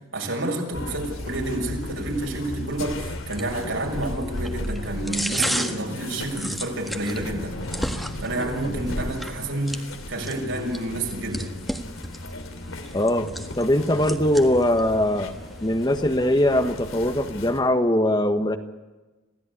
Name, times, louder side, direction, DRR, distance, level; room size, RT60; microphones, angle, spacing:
voice 1, 0.1-7.6 7.8-9.8 10.1-11.5, right 2 dB, 75° right, 1 dB, 6.7 m, -29 dB
sound 1, 0.7-17.6, left 1 dB, 90° left, 3.0 m, -35 dB
sound 2, 1.0-17.0, equal, ahead, 1.6 m, -36 dB
voice 2, 12.9-13.3 13.6-15.3 15.6-18.6, left 1 dB, 20° left, 8 dB, 1.3 m, -21 dB
27.5 x 16.5 x 9.9 m, 1.1 s
head